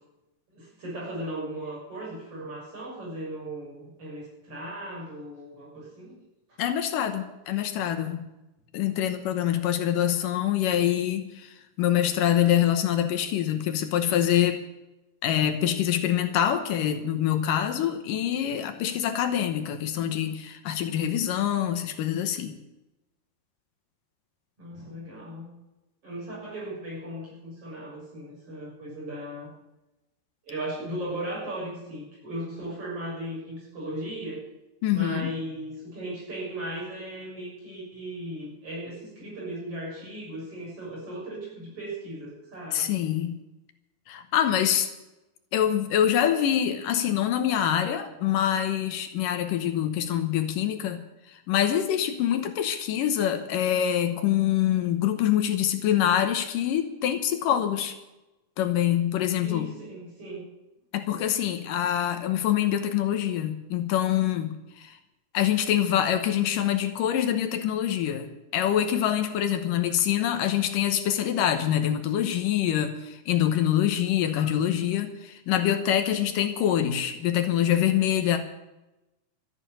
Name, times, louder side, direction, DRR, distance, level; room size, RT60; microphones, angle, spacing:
voice 1, 0.5-6.1 24.6-25.5 26.0-29.5 30.4-34.4 34.9-42.9 59.4-60.5, right 1 dB, 40° right, -4 dB, 7.7 m, -37 dB
voice 2, 6.6-8.2 8.7-14.6 15.2-22.5 34.8-35.3 42.7-43.4 44.1-44.9 45.5-51.0 51.3-57.9 58.6-59.7 60.9-65.0 65.3-78.4, left 10 dB, 80° left, 8 dB, 2.6 m, -25 dB
13.5 x 9.7 x 8.9 m, 0.98 s
omnidirectional pair, 4.0 m